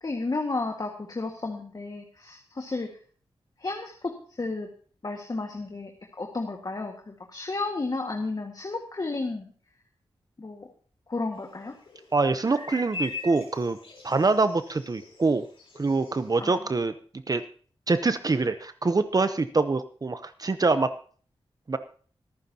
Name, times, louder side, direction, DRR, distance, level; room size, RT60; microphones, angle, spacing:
voice 1, 0.0-2.9 3.6-4.7 5.0-5.9 6.2-9.5 10.4-10.7 11.1-11.7 16.4-16.6, left 3 dB, 40° left, 3 dB, 1.7 m, -32 dB
sound 1, 11.3-16.5, left 4 dB, 70° left, 3.9 m, -42 dB
voice 2, 12.1-13.8 14.0-15.5 15.8-16.9 17.3-17.4 17.9-20.9 21.7-21.8, right 3 dB, 40° right, 11 dB, 0.8 m, -25 dB
25.0 x 9.3 x 2.8 m, 0.43 s
cardioid pair, 70°, 10 cm